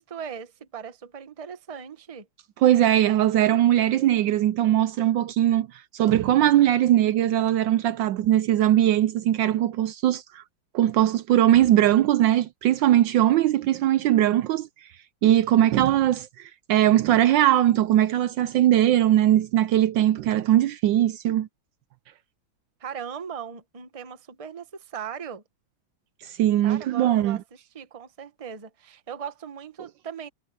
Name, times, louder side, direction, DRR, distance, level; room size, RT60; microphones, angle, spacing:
voice 1, 0.0-2.3 22.8-25.4 26.6-27.4 27.7-30.3, right 7 dB, 25° right, 0.8 m, -38 dB
voice 2, 2.6-10.4 10.7-14.7 15.2-21.5 26.2-27.4, right 12 dB, 75° right, 1.2 m, -20 dB
omnidirectional pair, 2.2 m